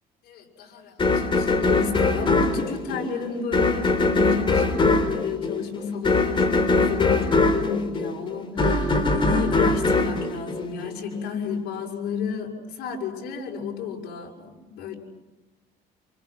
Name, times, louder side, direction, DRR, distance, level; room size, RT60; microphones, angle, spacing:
voice 1, 0.2-15.0, left 6 dB, 75° left, -1 dB, 6.4 m, -32 dB
sound 1, 1.0-11.2, left 3 dB, 30° left, 3.8 m, -22 dB
28.0 x 28.0 x 6.0 m, 1.1 s
cardioid pair, 110°, 17 cm